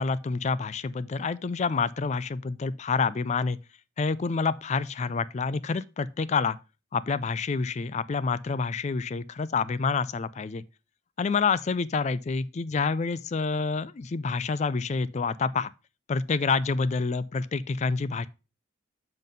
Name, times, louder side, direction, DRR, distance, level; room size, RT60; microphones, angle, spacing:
voice 1, 0.0-3.6 4.0-6.6 6.9-10.6 11.2-15.7 16.1-18.3, left 4 dB, 35° left, 0.3 m, -28 dB
7.4 x 3.9 x 5.2 m
head